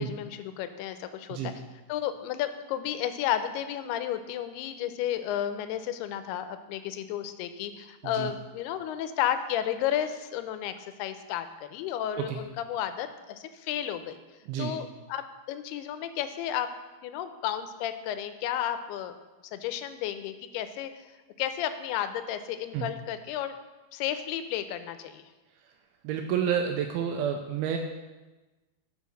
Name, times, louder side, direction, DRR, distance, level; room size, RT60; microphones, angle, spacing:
voice 1, 0.0-1.5 1.9-10.7 11.0-14.2 14.6-16.7 17.0-19.1 19.5-20.9 21.4-23.5 23.9-25.2, left 10 dB, 90° left, 10 dB, 2.6 m, -32 dB
voice 2, 26.0-27.8, right 8 dB, 85° right, 4 dB, 2.4 m, -29 dB
8.2 x 4.9 x 6.5 m, 1.2 s
omnidirectional pair, 4.5 m